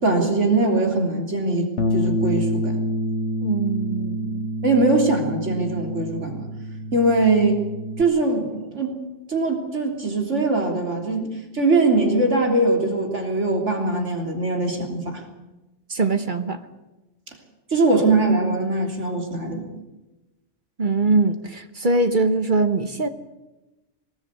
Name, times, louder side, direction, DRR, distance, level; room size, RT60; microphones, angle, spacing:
voice 1, 0.0-2.8 4.6-6.5 6.9-7.6 8.0-9.0 9.3-15.2 17.7-19.7, right 2 dB, 85° right, 2 dB, 3.7 m, -21 dB
Bass guitar, 1.8-8.0, equal, 80° left, 1.6 m, -27 dB
voice 2, 3.4-4.5 15.9-16.6 20.8-23.1, right 3 dB, 45° right, 9 dB, 1.4 m, -22 dB
22.0 x 19.0 x 8.4 m, 1.0 s
omnidirectional pair, 1.2 m